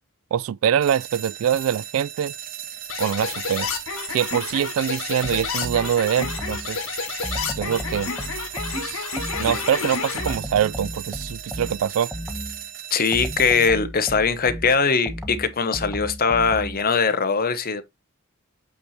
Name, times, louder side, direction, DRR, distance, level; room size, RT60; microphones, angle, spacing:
voice 1, 0.3-2.3 3.0-3.7 4.1-6.8 7.5-8.1 8.8-9.1 9.4-12.1, right 9 dB, 70° right, 0.3 m, -24 dB
sound 1, 0.8-13.7, right 10 dB, 45° right, 0.7 m, -37 dB
sound 2, 2.9-10.4, left 5 dB, 75° left, 1.9 m, -30 dB
sound 3, 5.2-6.8 7.2-9.7 10.2-12.7 13.1-16.9, equal, ahead, 1.1 m, -34 dB
voice 2, 12.9-17.8, left 5 dB, 45° left, 0.9 m, -21 dB
8.4 x 3.1 x 4.2 m
head